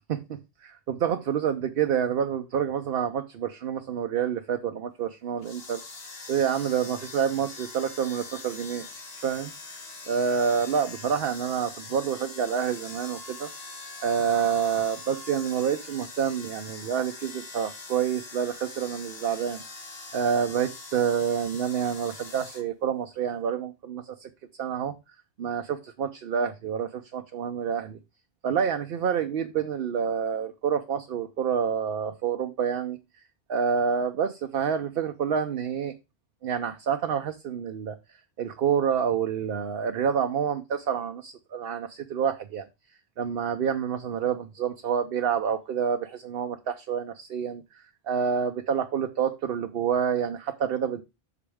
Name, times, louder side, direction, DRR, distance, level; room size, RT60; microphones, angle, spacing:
voice 1, 0.9-5.8 6.3-8.9 9.2-13.5 14.0-24.9 25.4-28.0 28.4-33.0 33.5-35.9 36.4-38.0 38.4-42.7 43.2-51.0, right 7 dB, 65° right, 6 dB, 0.8 m, -28 dB
sound 1, 5.4-22.6, left 3 dB, 70° left, 1.6 m, -43 dB
8.4 x 5.9 x 3.4 m, 0.25 s
omnidirectional pair, 1.1 m